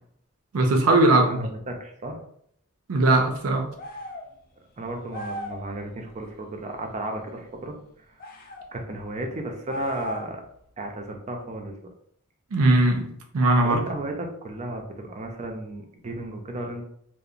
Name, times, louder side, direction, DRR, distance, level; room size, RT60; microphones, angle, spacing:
voice 1, 0.5-1.5 2.9-3.7 12.5-13.8, right 2 dB, 85° right, 0.5 m, -20 dB
voice 2, 1.1-2.2 4.8-7.8 8.7-10.4 10.8-11.7 13.6-16.8, right 2 dB, 30° right, 0.4 m, -34 dB
sound 1, 3.8-4.3 5.1-5.7 8.2-8.7 9.7-10.5, left 2 dB, 40° left, 0.3 m, -36 dB
2.8 x 2.0 x 2.4 m
head